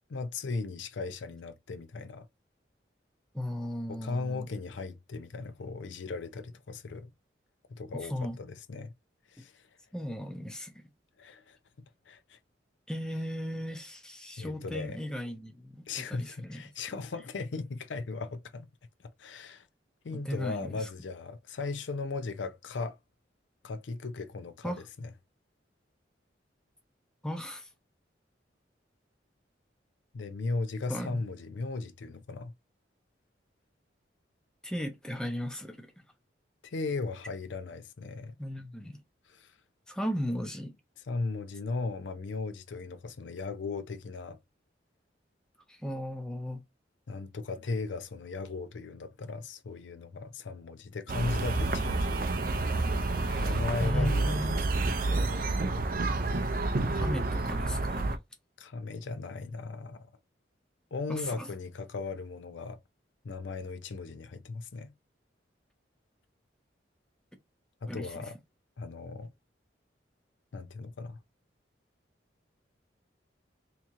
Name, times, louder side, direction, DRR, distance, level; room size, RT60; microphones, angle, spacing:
voice 1, 0.1-2.3 3.9-7.1 7.7-8.9 9.3-9.6 11.2-12.4 14.4-15.0 15.9-18.7 19.2-19.7 20.0-23.0 23.6-25.1 30.1-32.5 36.6-38.4 39.3-39.5 41.1-44.4 47.1-52.2 53.4-54.6 58.6-60.1 60.9-62.8 63.2-64.9 67.8-68.4 68.8-69.3 70.5-71.2, left 3 dB, 80° left, 0.5 m, -37 dB
voice 2, 3.3-4.5 8.0-8.4 9.9-10.7 12.9-16.7 20.1-20.9 24.6-24.8 27.2-27.7 30.9-31.2 34.6-35.9 38.4-39.0 39.9-40.7 45.7-46.6 53.3-54.6 56.9-58.1 61.1-61.5 67.9-68.1, equal, 5° left, 0.6 m, -36 dB
sound 1, 51.1-58.2, right 2 dB, 50° right, 0.5 m, -29 dB
2.9 x 2.9 x 3.6 m
head